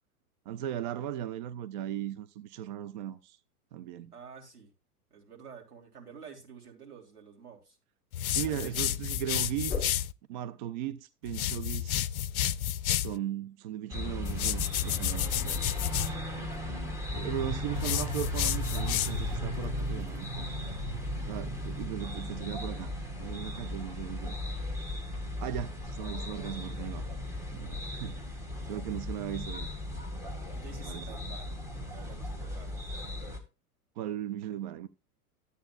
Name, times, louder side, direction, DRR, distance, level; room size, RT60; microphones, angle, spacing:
voice 1, 0.5-3.4 3.7-4.1 8.3-9.9 10.3-12.0 12.9-15.6 17.1-20.5 21.3-22.9 23.2-24.4 25.4-27.0 27.5-28.2 28.7-29.7 30.9-31.0 34.0-34.9, right 11 dB, 35° right, 0.4 m, -37 dB
voice 2, 4.1-4.7 5.1-7.8 8.4-8.8 21.1-21.6 25.1-25.6 30.5-31.5 31.9-32.8, right 6 dB, 75° right, 3.4 m, -50 dB
sound 1, 8.1-10.1 11.3-13.2 14.3-16.1 17.8-19.4, left 11 dB, 70° left, 0.5 m, -31 dB
sound 2, 9.6-10.0 14.1-17.6 18.6-21.9, left 5 dB, 20° left, 2.7 m, -46 dB
sound 3, 13.9-33.4, left 1 dB, 5° right, 1.8 m, -36 dB
13.0 x 8.2 x 2.3 m
figure-of-eight pair, 100°, 45 cm